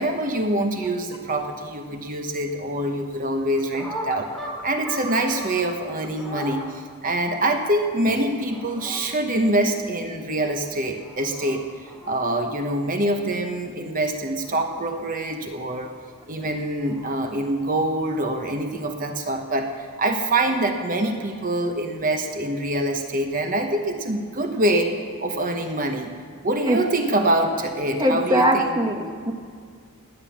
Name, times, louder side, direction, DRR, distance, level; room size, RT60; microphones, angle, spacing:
voice 1, 0.0-4.3 4.6-11.6 12.0-15.9 16.3-26.1 26.4-28.7, right 1 dB, 40° right, 5 dB, 1.0 m, -25 dB
sound 1, 3.5-5.6 6.0-6.6 8.3-9.0 10.7-11.6 11.9-12.1 14.2-14.9 16.5-17.4 19.8-20.6, equal, ahead, 3.2 m, -38 dB
voice 2, 28.0-29.3, equal, 20° right, 3 dB, 1.1 m, -21 dB
17.5 x 10.5 x 7.3 m, 2.1 s
head